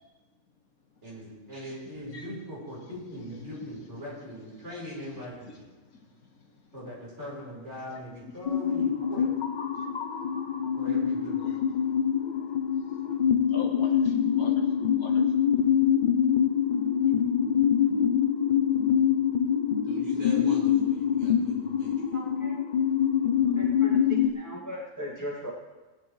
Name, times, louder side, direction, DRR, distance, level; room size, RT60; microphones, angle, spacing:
voice 1, 1.0-5.6 6.7-9.3 10.8-11.6 19.8-22.1, equal, 50° right, -5 dB, 4.3 m, -41 dB
voice 2, 5.8-6.6 7.9-8.3 9.7-10.0 11.4-11.6 12.8-13.1 13.4-15.4 17.1-17.2, left 2 dB, 75° left, 2 dB, 1.8 m, -46 dB
sound 1, 8.5-24.3, left 8 dB, 50° left, 0.5 m, -25 dB
voice 3, 22.1-22.5 23.2-25.5, equal, 10° left, -4 dB, 1.7 m, -39 dB
18.5 x 9.3 x 3.2 m, 1.2 s
omnidirectional pair, 1.6 m